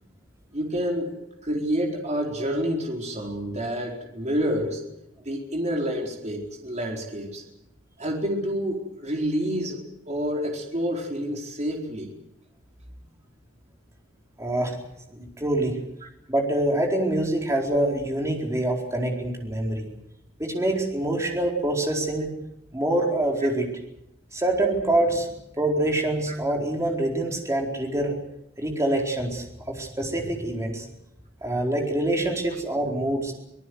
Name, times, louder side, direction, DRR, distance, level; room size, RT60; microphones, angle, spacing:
voice 1, 0.5-1.2 1.4-4.8 5.2-7.4 8.0-12.1, equal, 35° right, 1 dB, 4.4 m, -28 dB
voice 2, 14.4-14.8 15.1-15.8 16.3-19.9 20.4-22.3 22.7-23.7 24.3-25.3 25.6-28.2 28.6-30.9 31.4-33.3, right 1 dB, 15° right, 1 dB, 4.4 m, -25 dB
25.5 x 18.5 x 8.0 m, 0.84 s
head